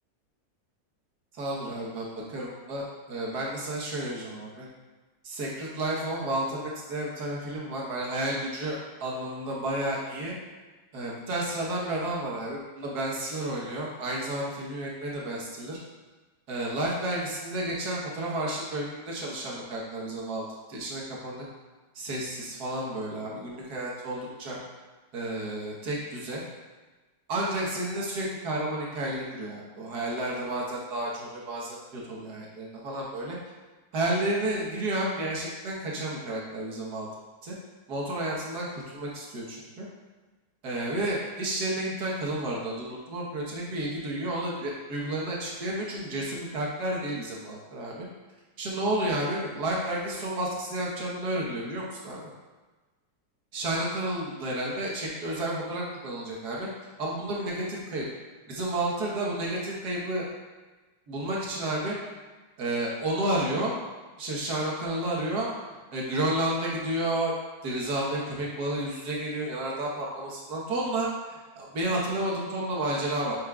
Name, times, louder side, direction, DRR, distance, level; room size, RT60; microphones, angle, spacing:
voice 1, 1.4-4.7 5.2-10.3 10.9-15.8 16.5-20.4 20.7-21.5 22.0-24.6 25.1-26.4 27.3-33.4 33.9-37.1 37.4-37.6 37.9-39.9 40.6-48.1 48.6-52.3 53.5-56.7 57.0-58.1 58.5-60.3 61.1-62.0 62.6-63.8 64.2-65.5 65.9-67.3 67.6-73.4, right 1 dB, 65° right, -4 dB, 1.8 m, -31 dB
8.4 x 5.2 x 2.4 m, 1.3 s
omnidirectional pair, 1.9 m